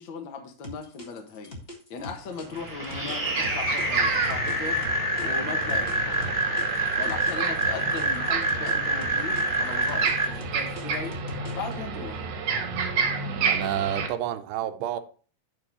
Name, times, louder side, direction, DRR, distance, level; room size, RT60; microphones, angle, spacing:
voice 1, 0.0-1.5 1.9-4.8 5.2-6.2 7.0-11.1 11.5-12.2, left 5 dB, 85° left, 1.0 m, -38 dB
sound 1, 0.6-5.3 5.7-8.7 9.0-11.7, left 1 dB, 55° left, 0.6 m, -41 dB
sound 2, 2.0-2.1 2.5-14.1, right 5 dB, 65° right, 1.7 m, -31 dB
sound 3, 2.5-10.2, right 2 dB, 25° right, 0.4 m, -27 dB
voice 2, 13.5-15.0, right 11 dB, 90° right, 2.9 m, -30 dB
11.0 x 3.8 x 6.1 m
omnidirectional pair, 4.7 m